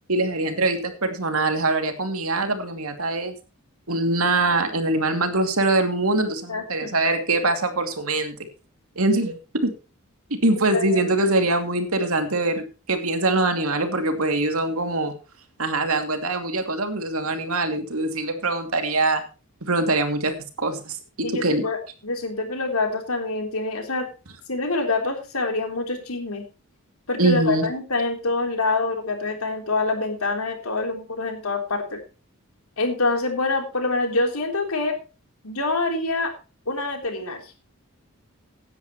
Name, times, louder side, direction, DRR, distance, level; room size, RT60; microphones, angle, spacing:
voice 1, 0.1-3.3 3.9-8.3 9.0-9.7 10.4-15.1 15.6-19.2 19.6-21.6 27.2-27.7, right 2 dB, 75° right, 6 dB, 2.6 m, -23 dB
voice 2, 6.5-6.9 10.7-11.1 21.2-24.1 24.5-26.5 27.1-32.0 32.8-34.9 35.4-36.3 36.7-37.5, left 3 dB, 80° left, 4 dB, 3.6 m, -26 dB
16.5 x 10.5 x 3.1 m, 0.33 s
head